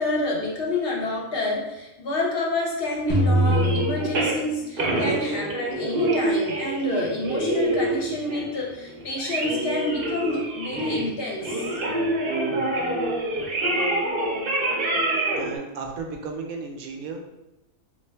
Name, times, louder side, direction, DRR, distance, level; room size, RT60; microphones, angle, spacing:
voice 1, 0.0-11.7, left 2 dB, 50° left, -2 dB, 0.8 m, -28 dB
sound 1, 3.1-5.3, right 1 dB, 25° left, 0.4 m, -23 dB
sound 2, 3.3-4.4 4.8-11.1 11.4-15.6, right 1 dB, 50° right, 0.7 m, -26 dB
voice 2, 15.4-17.3, right 4 dB, 80° right, 3 dB, 1.0 m, -34 dB
3.4 x 2.5 x 3.3 m, 0.95 s
omnidirectional pair, 1.5 m